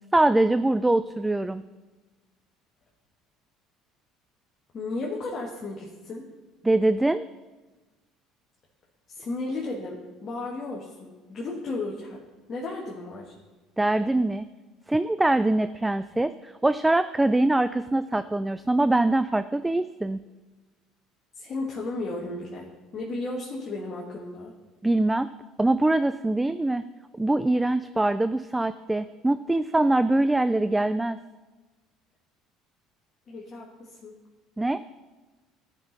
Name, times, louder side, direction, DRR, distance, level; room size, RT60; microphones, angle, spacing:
voice 1, 0.1-1.6 6.6-7.3 13.8-14.5 14.9-20.2 24.8-25.3 25.6-26.8 27.1-31.2 34.6-34.8, right 2 dB, 10° right, 12 dB, 0.3 m, -23 dB
voice 2, 4.7-6.3 9.1-12.2 12.5-13.3 21.3-24.5 33.3-34.1, left 2 dB, 45° left, -3 dB, 1.6 m, -34 dB
13.5 x 6.1 x 4.0 m, 1.2 s
hypercardioid pair, 75°, 0 cm